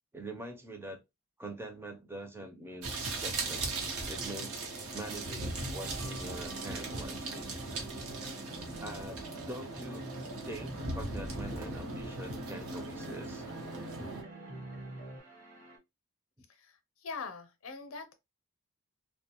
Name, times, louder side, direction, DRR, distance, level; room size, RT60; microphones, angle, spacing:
voice 1, 0.1-1.0 1.4-3.8 4.0-7.5 8.8-10.1 10.4-13.4 14.0-14.1, right 1 dB, 10° right, 0.4 m, -44 dB
sound 1, 2.8-14.2, right 2 dB, 80° right, 0.7 m, -39 dB
sound 2, 4.8-15.8, right 1 dB, 35° right, 0.7 m, -56 dB
sound 3, 5.6-15.2, right 2 dB, 50° right, 1.1 m, -47 dB
voice 2, 16.5-18.1, left 4 dB, 65° left, 0.5 m, -43 dB
2.4 x 2.2 x 2.8 m
head